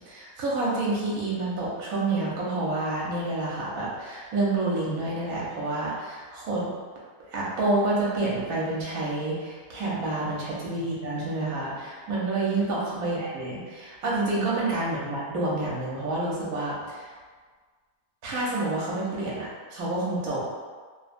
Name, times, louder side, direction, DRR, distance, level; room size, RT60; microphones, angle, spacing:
voice 1, 0.1-6.7 7.3-17.1 18.2-20.4, right 2 dB, 75° right, -6 dB, 1.2 m, -28 dB
2.9 x 2.2 x 2.5 m, 1.5 s
omnidirectional pair, 1.6 m